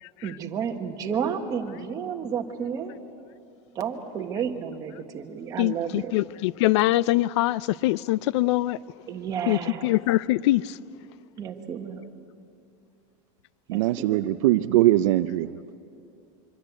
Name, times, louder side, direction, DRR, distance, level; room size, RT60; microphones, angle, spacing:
voice 1, 0.2-3.0 3.7-6.1 9.1-9.9 11.4-12.0 13.7-14.3, right 7 dB, 20° right, 1.5 m, -31 dB
voice 2, 5.6-8.8 9.5-10.8, left 17 dB, 60° left, 0.5 m, -23 dB
voice 3, 13.7-15.5, right 15 dB, 90° right, 0.7 m, -21 dB
25.0 x 24.5 x 8.2 m
supercardioid pair, 180°, 16 cm